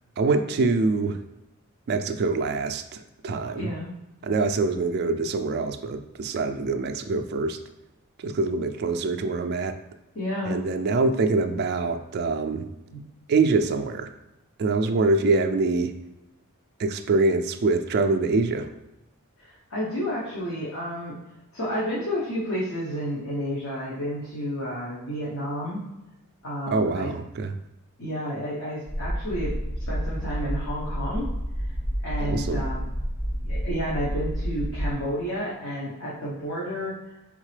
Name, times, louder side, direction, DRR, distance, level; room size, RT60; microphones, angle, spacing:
voice 1, 0.2-1.2 1.9-3.7 4.2-7.6 8.2-9.7 10.5-12.7 13.3-14.1 14.6-15.9 16.8-18.7 26.7-27.6 32.2-32.6, right 3 dB, 50° right, 7 dB, 0.3 m, -24 dB
voice 2, 3.6-3.9 10.1-10.6 12.9-13.0 19.4-21.2 21.5-25.8 26.4-27.1 28.0-29.6 29.9-31.3 32.0-32.8 33.4-36.9, equal, 65° left, -7 dB, 1.0 m, -31 dB
sound 1, 28.9-34.9, equal, 35° left, 0.8 m, -29 dB
4.0 x 3.6 x 3.2 m, 0.93 s
head